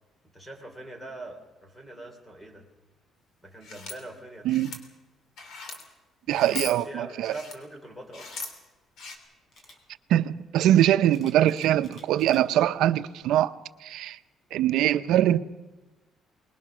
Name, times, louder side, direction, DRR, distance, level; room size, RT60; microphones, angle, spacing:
voice 1, 0.3-2.7 3.4-4.5 6.3-8.4, right 2 dB, 5° left, 3.1 m, -43 dB
sound 1, 3.6-3.9 4.5-4.8 5.4-5.8 6.3-6.7 7.2-7.5 8.1-8.5 9.0-9.2, left 5 dB, 60° left, 3.2 m, -38 dB
voice 2, 4.4-4.8 6.3-7.4 10.1-13.5 13.8-14.2 14.5-15.4, right 12 dB, 80° right, 0.7 m, -22 dB
Camera, 8.1-8.4 9.5-9.8 11.1-12.4 12.9-13.2, left 1 dB, 35° left, 3.9 m, -53 dB
24.0 x 21.0 x 6.1 m
cardioid pair, 160°, 0 cm